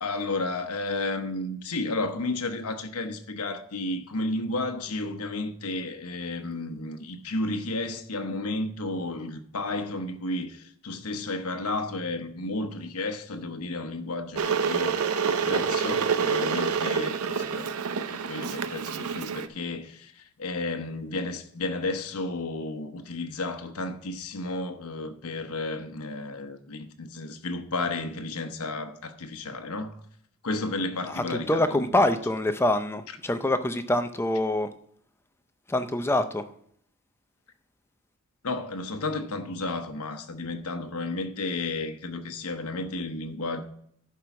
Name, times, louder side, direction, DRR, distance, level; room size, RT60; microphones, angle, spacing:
voice 1, 0.0-17.7 18.1-29.9 30.4-32.2 38.4-43.6, left 2 dB, 90° left, 0.9 m, -32 dB
Water / Boiling, 14.4-19.5, right 6 dB, 80° right, 0.6 m, -27 dB
voice 2, 31.1-34.7 35.7-36.4, left 1 dB, 10° left, 0.5 m, -25 dB
11.0 x 4.7 x 5.9 m
head